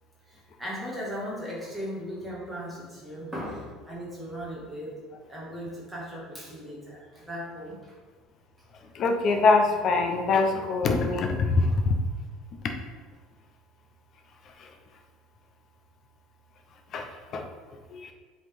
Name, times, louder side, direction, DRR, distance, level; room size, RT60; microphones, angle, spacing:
voice 1, 0.3-4.9 5.3-7.9 11.6-11.7, equal, 5° right, -6 dB, 1.8 m, -37 dB
voice 2, 8.9-12.0 16.9-17.5 17.9-18.1, left 3 dB, 40° left, 4 dB, 0.8 m, -24 dB
7.7 x 4.0 x 3.6 m, 1.5 s
cardioid pair, 155°, 0 cm